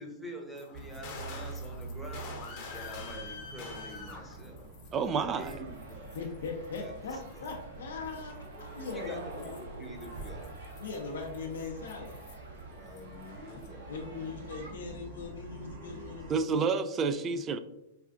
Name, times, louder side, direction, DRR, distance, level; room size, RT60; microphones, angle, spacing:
voice 1, 0.0-6.2 6.7-7.5 8.9-10.5 12.7-13.9, equal, ahead, 0 dB, 0.8 m, -46 dB
sound 1, 0.5-5.1 5.4-7.6 8.1-12.6 12.9-13.7, left 4 dB, 45° left, 0.8 m, -47 dB
sound 2, 0.7-16.3, right 3 dB, 50° right, 0.9 m, -46 dB
voice 2, 4.9-5.6 16.3-17.6, right 5 dB, 25° right, 10 dB, 0.3 m, -29 dB
sound 3, 5.4-14.7, right 2 dB, 75° right, 1.0 m, -49 dB
voice 3, 6.1-8.3 8.6-9.4 10.7-12.2 13.9-16.6, left 4 dB, 70° left, 0 dB, 0.5 m, -40 dB
4.2 x 2.4 x 2.4 m, 0.88 s
hypercardioid pair, 115°, 0 cm